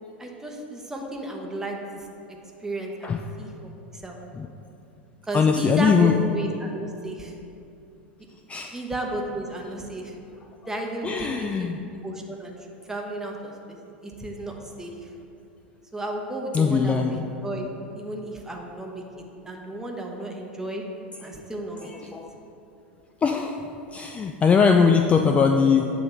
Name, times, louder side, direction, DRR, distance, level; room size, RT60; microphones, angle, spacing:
voice 1, 0.2-2.1 2.6-4.2 5.3-7.3 8.7-10.1 10.7-11.8 12.0-12.5 12.9-15.1 15.9-17.7 17.9-19.0 19.4-20.8 21.2-22.1, right 1 dB, 10° right, 0 dB, 1.0 m, -33 dB
voice 2, 5.3-6.1 8.5-8.7 11.0-11.8 16.5-17.2 21.8-22.3 23.2-23.5 23.9-25.8, left 5 dB, 20° left, 4 dB, 0.3 m, -21 dB
8.8 x 3.3 x 5.5 m, 2.7 s
hypercardioid pair, 85°, 6 cm